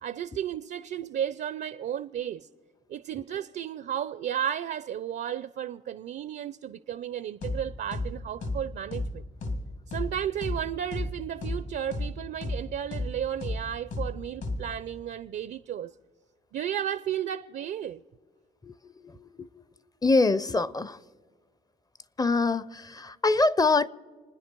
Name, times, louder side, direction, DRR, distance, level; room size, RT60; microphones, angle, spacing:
voice 1, 0.0-2.5 2.9-9.2 9.9-15.9 16.5-18.0, right 10 dB, 55° right, 0.5 m, -33 dB
sound 1, 7.4-7.6 7.9-8.1 8.4-8.6 8.9-9.1 9.4-9.6 9.9-10.1 10.4-10.6 10.9-11.1 11.4-11.6 11.9-12.1 12.4-12.6 12.9-13.1 13.4-13.6 13.9-14.1 14.4-14.6, left 2 dB, 70° left, 2.9 m, -31 dB
voice 2, 20.0-21.0 22.2-23.9, left 3 dB, 20° left, 0.5 m, -24 dB
29.0 x 10.0 x 4.5 m
cardioid pair, 90°, 20 cm